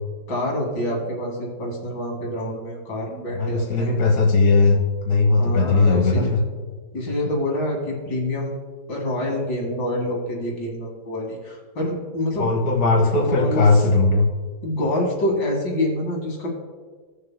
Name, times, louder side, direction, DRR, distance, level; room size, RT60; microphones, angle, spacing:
voice 1, 0.3-3.9 5.4-6.3 6.9-8.5 8.9-12.5 13.3-13.7 14.6-16.5, left 1 dB, 85° left, -2 dB, 2.6 m, -26 dB
voice 2, 3.3-6.4 12.4-14.3, left 3 dB, 55° left, -1 dB, 1.8 m, -18 dB
17.5 x 6.7 x 2.2 m, 1.5 s
omnidirectional pair, 1.9 m